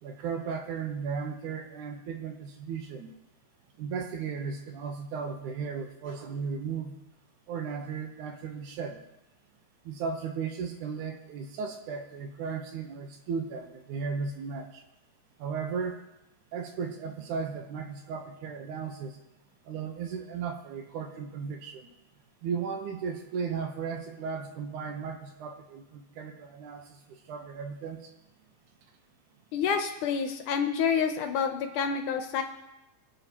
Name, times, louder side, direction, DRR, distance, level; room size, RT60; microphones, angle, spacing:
voice 1, 0.0-3.1 3.8-7.0 7.5-9.0 9.9-14.8 15.4-16.0 16.5-19.2 19.7-21.9 22.4-28.1, right 6 dB, 70° right, 4 dB, 2.2 m, -35 dB
voice 2, 29.5-32.4, left 6 dB, 75° left, 6 dB, 2.1 m, -28 dB
23.0 x 8.6 x 2.9 m, 0.92 s
omnidirectional pair, 4.0 m